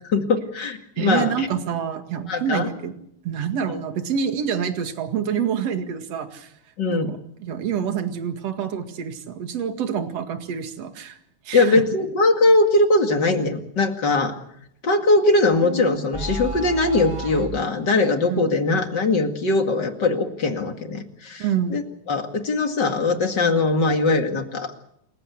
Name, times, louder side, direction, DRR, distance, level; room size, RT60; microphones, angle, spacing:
voice 1, 0.1-1.5 2.3-2.7 3.7-3.8 6.8-7.1 11.5-14.3 14.8-21.4 21.7-21.8 22.1-24.8, left 2 dB, 40° left, 5 dB, 2.5 m, -21 dB
voice 2, 1.0-2.9 3.2-6.5 6.9-11.2 11.4-11.8 18.2-18.5 21.4-21.9, right 8 dB, 60° right, 7 dB, 3.0 m, -27 dB
sound 1, 15.5-17.7, right 1 dB, 25° right, 0.7 m, -32 dB
28.5 x 15.0 x 8.2 m, 0.74 s
omnidirectional pair, 3.4 m